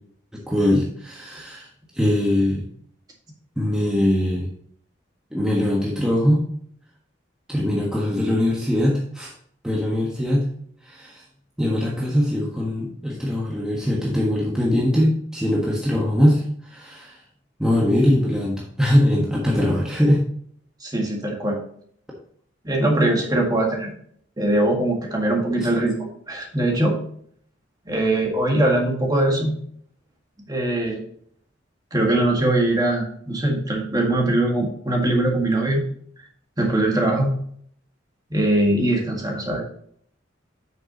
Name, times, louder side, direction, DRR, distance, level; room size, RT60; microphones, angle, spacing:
voice 1, 0.3-1.7 1.9-2.6 3.6-4.5 5.3-6.4 7.5-9.3 9.6-10.5 10.8-11.2 11.6-17.2 17.6-20.2, left 1 dB, 5° right, -4 dB, 1.4 m, -21 dB
voice 2, 20.8-21.6 22.6-23.9 24.4-27.0 27.9-29.6 30.5-31.0 31.9-35.8 36.6-37.4 38.3-39.6, right 1 dB, 20° right, 0 dB, 1.7 m, -21 dB
8.6 x 6.5 x 2.9 m, 0.62 s
head